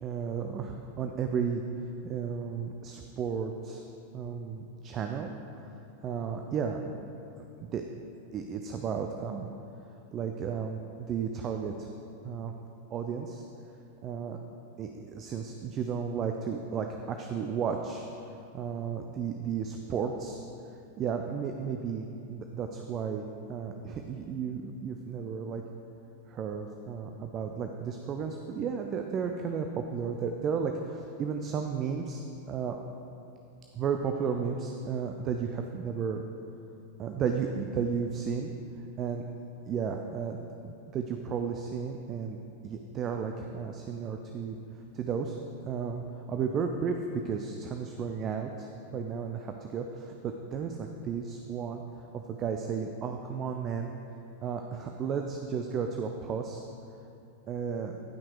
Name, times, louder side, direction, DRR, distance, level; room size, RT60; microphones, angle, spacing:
voice 1, 0.0-1.6 2.0-3.8 4.1-5.3 6.0-7.1 7.6-7.8 8.3-9.5 10.1-11.9 12.2-12.5 12.9-13.4 14.0-14.4 14.8-20.4 21.0-25.6 26.3-32.2 32.5-32.8 33.7-36.2 37.0-38.5 38.8-39.2 39.6-42.4 42.6-44.6 44.9-45.4 45.7-51.8 52.1-53.9 54.4-56.6 57.5-57.9, right 6 dB, 30° right, 4 dB, 0.5 m, -33 dB
10.5 x 5.8 x 4.7 m, 2.7 s
figure-of-eight pair, 90°, 0 cm